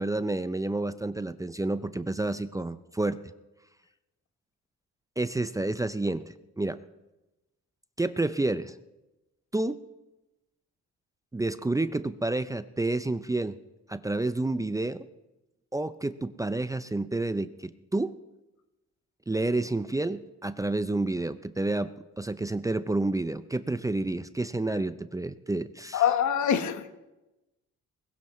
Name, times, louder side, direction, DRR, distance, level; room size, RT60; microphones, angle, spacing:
voice 1, 0.0-3.2 5.2-6.8 8.0-8.7 9.5-9.8 11.3-13.6 13.9-15.1 15.7-18.1 19.3-26.0, right 2 dB, 10° right, 13 dB, 0.5 m, -29 dB
voice 2, 25.9-26.9, left 9 dB, 70° left, 9 dB, 1.2 m, -24 dB
20.5 x 17.0 x 3.1 m, 1.0 s
cardioid pair, 90°, 30 cm